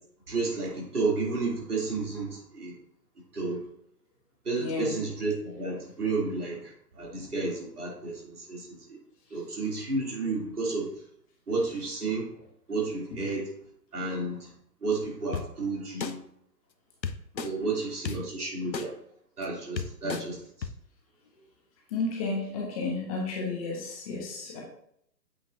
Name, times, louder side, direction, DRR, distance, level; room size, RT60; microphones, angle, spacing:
voice 1, 0.3-2.7 3.3-3.6 4.4-9.0 9.3-10.9 11.5-12.3 12.7-13.5 13.9-14.5 14.8-16.2 17.4-18.9 19.4-20.7, right 3 dB, 65° right, -3 dB, 3.1 m, -31 dB
voice 2, 4.6-4.9 20.0-20.2 21.9-24.6, left 3 dB, 20° left, -1 dB, 1.3 m, -32 dB
sound 1, 15.3-15.4 16.0-16.1 17.0-17.5 18.1-18.2 18.7-18.9 19.4-19.5 19.8-20.2 20.6-20.7, left 6 dB, 80° left, 0.7 m, -32 dB
8.2 x 6.1 x 2.7 m, 0.69 s
figure-of-eight pair, 130°, 50 cm